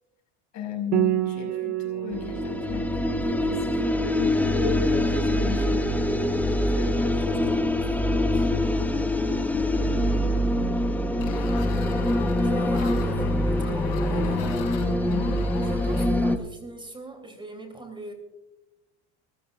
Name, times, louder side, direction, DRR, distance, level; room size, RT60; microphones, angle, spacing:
voice 1, 0.5-3.8 4.5-5.9 6.4-8.5 15.1-15.5, left 7 dB, 55° left, 2 dB, 5.5 m, -36 dB
Piano, 0.9-10.2, right 14 dB, 55° right, 1.2 m, -33 dB
sound 1, 2.1-16.4, left 1 dB, 5° left, 1.2 m, -24 dB
voice 2, 9.6-10.7 12.4-14.6 15.5-18.1, right 2 dB, 15° right, 5 dB, 3.1 m, -40 dB
sound 2, 11.2-16.1, left 8 dB, 70° left, 5.5 m, -40 dB
25.5 x 15.0 x 2.5 m, 0.94 s
supercardioid pair, 105°, 33 cm